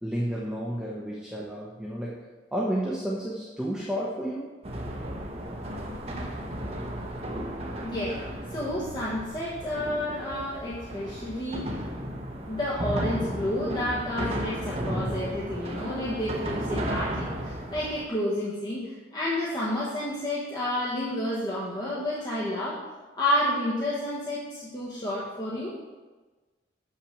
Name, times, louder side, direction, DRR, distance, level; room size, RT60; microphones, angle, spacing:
voice 1, 0.0-4.5, equal, 5° right, -5 dB, 0.8 m, -31 dB
sound 1, 4.6-18.1, equal, 35° right, 0.8 m, -34 dB
voice 2, 7.7-8.2 8.5-11.8 12.5-22.9 23.2-25.7, left 1 dB, 25° left, -8 dB, 1.2 m, -30 dB
6.7 x 5.7 x 5.9 m, 1.3 s
head